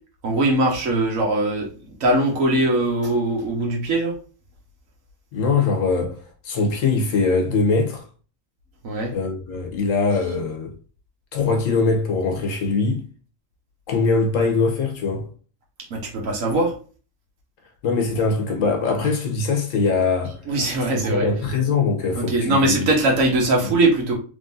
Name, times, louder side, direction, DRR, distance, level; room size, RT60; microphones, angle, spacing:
voice 1, 0.2-1.7 2.0-4.1 8.8-9.1 15.9-16.7 20.5-21.3 22.1-24.1, right 2 dB, 85° right, 1.5 m, -21 dB
voice 2, 5.3-8.1 9.1-10.7 11.3-13.0 13.9-15.3 17.8-20.4 20.9-22.9, left 4 dB, 80° left, 1.2 m, -22 dB
3.7 x 3.5 x 2.6 m
omnidirectional pair, 1.3 m